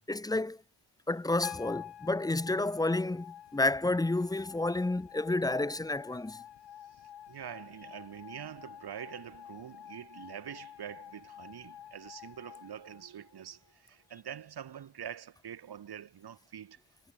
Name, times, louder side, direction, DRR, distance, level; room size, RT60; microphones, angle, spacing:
voice 1, 0.1-0.6 1.1-6.4, left 2 dB, 10° left, 0.8 m, -30 dB
sound 1, 1.4-13.7, left 10 dB, 90° left, 2.8 m, -49 dB
voice 2, 7.3-16.8, right 9 dB, 70° right, 3.8 m, -45 dB
wide cardioid pair, 165°, 40 cm